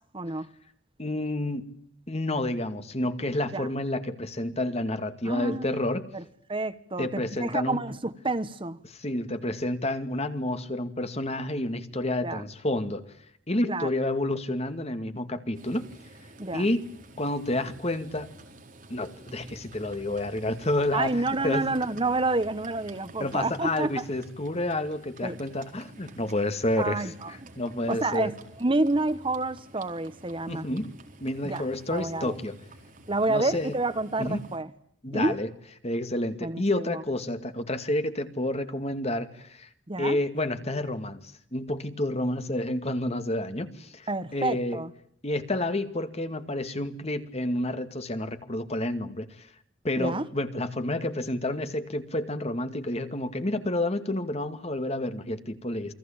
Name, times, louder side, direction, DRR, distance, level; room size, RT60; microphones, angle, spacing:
voice 1, 0.1-0.5 3.5-3.7 5.3-5.8 6.1-6.2 6.5-8.8 12.2-12.4 13.7-13.9 16.4-16.7 20.9-24.0 25.2-25.4 26.8-27.3 27.9-30.7 31.4-32.4 33.1-34.7 35.1-35.4 36.4-37.0 39.9-40.2 44.1-44.9 50.0-50.3, right 2 dB, 30° right, 1.1 m, -29 dB
voice 2, 1.0-1.7 2.1-6.0 7.0-7.8 8.9-13.1 13.5-15.9 16.5-16.8 17.2-18.3 18.9-21.7 23.2-28.3 30.5-30.9 31.2-32.6 33.3-33.8 34.2-34.4 35.0-35.5 35.8-39.7 40.0-41.2 41.5-44.8 45.2-49.5 49.8-55.9, left 1 dB, 35° left, 2.3 m, -29 dB
Livestock farm animals working animals, 15.5-34.6, right 2 dB, 45° right, 4.3 m, -50 dB
sound 1, 19.3-24.6, equal, 15° left, 5.8 m, -55 dB
29.0 x 21.5 x 8.9 m
head